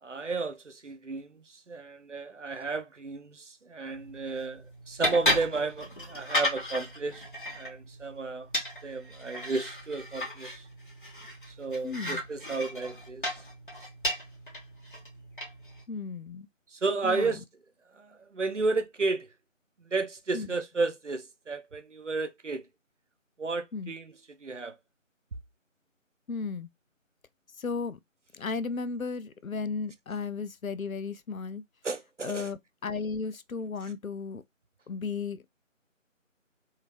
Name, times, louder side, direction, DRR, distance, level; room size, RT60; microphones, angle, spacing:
voice 1, 0.0-7.2 7.5-8.5 8.8-10.7 11.5-13.3 16.7-17.4 17.9-19.3 19.8-22.7 23.4-24.8 31.8-32.5 33.8-33.9, right 3 dB, 60° right, 0.8 m, -33 dB
sound 1, 3.9-15.8, left 1 dB, 40° left, 1.3 m, -35 dB
voice 2, 11.8-12.2 15.9-16.5 17.0-17.3 20.3-20.5 23.7-23.9 26.3-26.7 27.6-28.0 28.3-31.6 32.2-34.4 34.9-35.4, left 4 dB, 90° left, 0.6 m, -34 dB
3.6 x 2.7 x 3.1 m
figure-of-eight pair, 165°, 40 cm